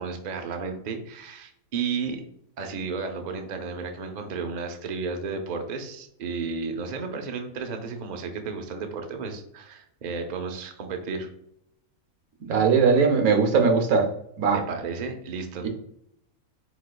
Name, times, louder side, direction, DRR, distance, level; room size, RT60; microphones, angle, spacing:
voice 1, 0.0-2.2 2.6-11.3 14.5-15.7, right 5 dB, 60° right, 5 dB, 0.4 m, -33 dB
voice 2, 12.4-14.1 14.4-14.6, right 5 dB, 75° right, 4 dB, 1.2 m, -20 dB
5.0 x 4.0 x 2.2 m, 0.75 s
omnidirectional pair, 1.6 m